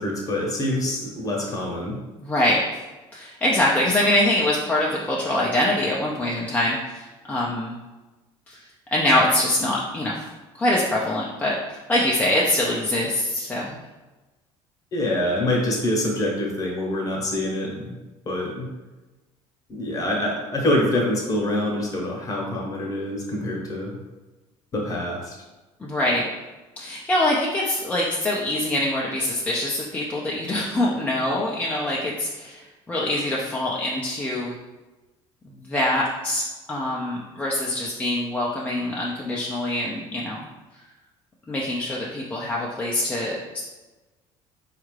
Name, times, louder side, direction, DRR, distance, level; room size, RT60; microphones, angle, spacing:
voice 1, 0.0-2.0 14.9-18.0 18.2-18.7 19.7-24.0 24.7-25.3, left 1 dB, 30° left, -2 dB, 1.0 m, -25 dB
voice 2, 2.2-2.8 3.1-7.8 8.5-8.6 8.9-10.2 10.5-13.8 25.8-26.2 26.8-34.6 35.6-40.4 41.5-43.6, left 1 dB, 15° left, -4 dB, 0.5 m, -24 dB
4.3 x 2.4 x 3.2 m, 1.2 s
cardioid pair, 135°, 11 cm